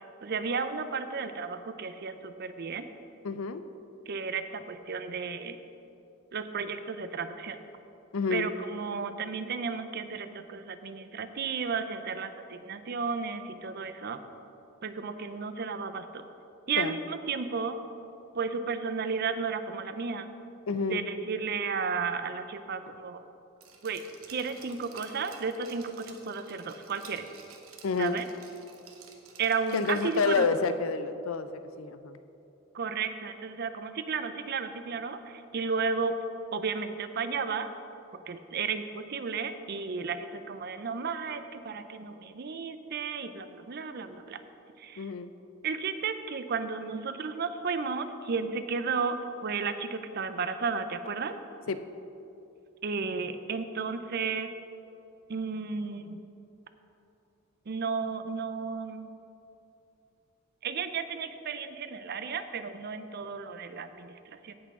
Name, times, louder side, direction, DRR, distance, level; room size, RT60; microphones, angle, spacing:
voice 1, 0.2-2.9 4.1-5.6 6.3-7.6 8.3-14.2 14.8-16.3 16.7-17.8 18.3-20.3 20.8-23.2 23.8-24.0 24.3-27.3 28.0-28.3 29.4-30.5 32.7-36.2 36.5-37.7 38.1-44.4 44.8-45.1 45.6-51.3 52.8-54.5 55.3-56.2 57.7-59.1 60.6-64.5, right 5 dB, 50° right, 10 dB, 0.5 m, -33 dB
voice 2, 3.2-3.6 8.1-8.5 16.8-17.0 20.7-21.1 27.8-28.2 29.7-32.2 45.0-45.3 51.7-51.8, left 4 dB, 75° left, 11 dB, 0.5 m, -29 dB
Glass, 23.6-30.5 30.9-31.0, right 5 dB, 80° right, 1.1 m, -52 dB
16.5 x 6.1 x 3.6 m, 2.8 s
head